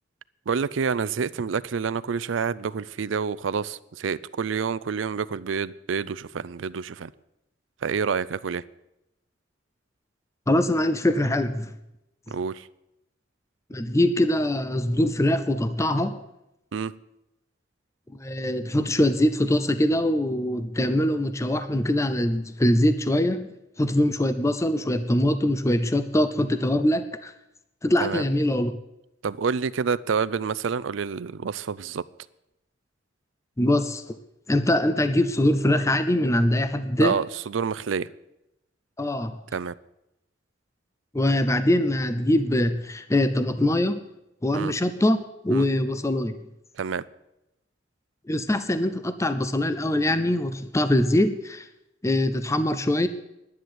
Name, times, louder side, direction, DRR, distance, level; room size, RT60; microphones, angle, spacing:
voice 1, 0.5-7.1 7.8-8.6 12.3-12.7 16.7-16.9 28.0-28.2 29.2-32.0 37.0-38.1 39.5-39.7 44.5-44.7 45.5-45.7 46.8-47.0, right 6 dB, 80° right, 18 dB, 0.5 m, -28 dB
voice 2, 10.5-11.7 13.7-16.2 18.2-23.5 23.8-27.3 27.8-28.7 33.6-34.2 34.5-37.2 39.0-39.4 41.1-44.0 44.4-46.3 48.3-51.7 52.0-53.1, left 1 dB, 15° left, 11 dB, 0.6 m, -23 dB
10.5 x 10.5 x 8.0 m, 0.89 s
head